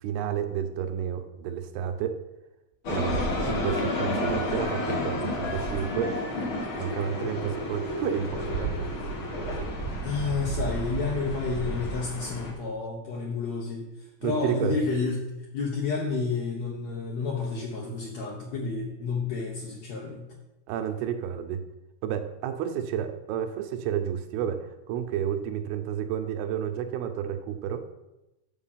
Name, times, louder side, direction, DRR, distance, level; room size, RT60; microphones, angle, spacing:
voice 1, 0.0-2.2 2.9-6.2 6.8-8.8 14.2-14.8 20.7-21.6 22.0-27.9, right 9 dB, 80° right, 8 dB, 2.4 m, -31 dB
sound 1, 2.8-12.5, left 1 dB, 85° left, 1.1 m, -31 dB
voice 2, 10.0-20.3, left 4 dB, 70° left, -2 dB, 1.6 m, -30 dB
7.5 x 7.4 x 5.6 m, 0.96 s
omnidirectional pair, 4.8 m